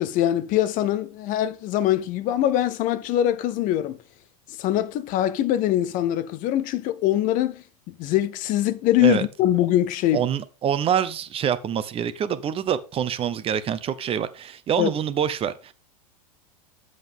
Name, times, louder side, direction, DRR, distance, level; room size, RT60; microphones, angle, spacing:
voice 1, 0.0-4.0 4.6-7.6 8.0-10.2 14.8-14.9, left 12 dB, 40° left, 0.7 m, -23 dB
voice 2, 10.1-15.7, right 9 dB, 30° right, 0.8 m, -25 dB
8.9 x 7.7 x 3.6 m
hypercardioid pair, 95°, 20 cm